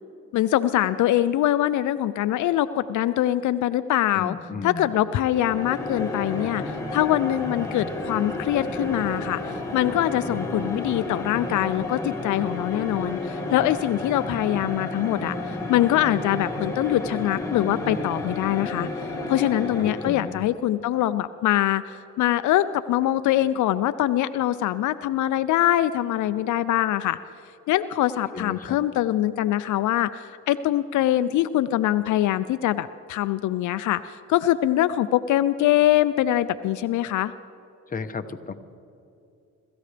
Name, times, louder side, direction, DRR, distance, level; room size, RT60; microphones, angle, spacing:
voice 1, 0.3-4.4 4.6-18.9 19.3-27.2 27.7-37.3, left 13 dB, 75° left, 12 dB, 0.5 m, -23 dB
voice 2, 4.1-4.9 19.8-20.4 28.3-28.8 37.9-38.5, left 4 dB, 30° left, 7 dB, 1.0 m, -34 dB
sound 1, 5.1-20.4, left 2 dB, 10° left, 2.2 m, -31 dB
25.5 x 14.0 x 3.4 m, 2.7 s
cardioid pair, 90°, 30 cm